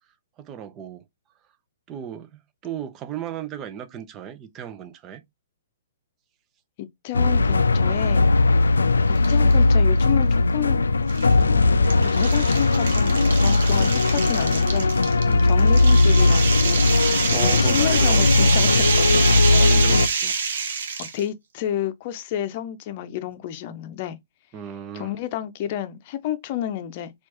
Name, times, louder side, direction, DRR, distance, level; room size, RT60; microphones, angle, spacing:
voice 1, 0.4-1.0 1.9-5.2 15.2-15.5 17.3-18.5 19.6-20.4 24.5-25.1, right 9 dB, 25° right, 0.6 m, -35 dB
voice 2, 6.8-8.2 9.3-10.8 11.4-14.9 15.4-16.8 17.3-19.9 21.0-24.2 24.9-27.1, left 12 dB, 40° left, 0.6 m, -30 dB
sound 1, 7.1-20.1, left 3 dB, 90° left, 0.3 m, -18 dB
sound 2, 9.1-9.6 10.0-10.1 11.1-21.2, right 5 dB, 65° right, 1.1 m, -27 dB
4.4 x 2.5 x 3.0 m
hypercardioid pair, 130°, 0 cm